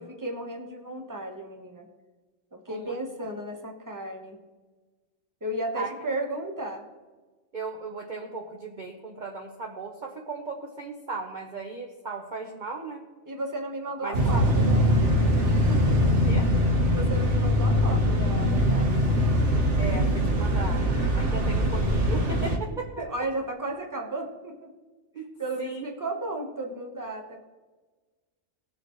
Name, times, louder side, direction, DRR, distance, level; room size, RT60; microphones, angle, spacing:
voice 1, 0.0-1.9 2.5-4.4 5.4-6.9 13.2-14.9 15.7-16.2 16.6-19.1 23.0-24.7 25.4-27.4, right 1 dB, 15° right, 2 dB, 1.2 m, -34 dB
voice 2, 7.5-13.0 14.0-14.7 16.2-16.5 19.7-20.8 21.1-23.0 25.1-25.3 25.6-25.9, right 4 dB, 40° right, 1 dB, 0.9 m, -36 dB
sound 1, 14.1-22.6, equal, 60° right, 1.6 m, -22 dB
19.0 x 6.7 x 3.1 m, 1.3 s
omnidirectional pair, 1.4 m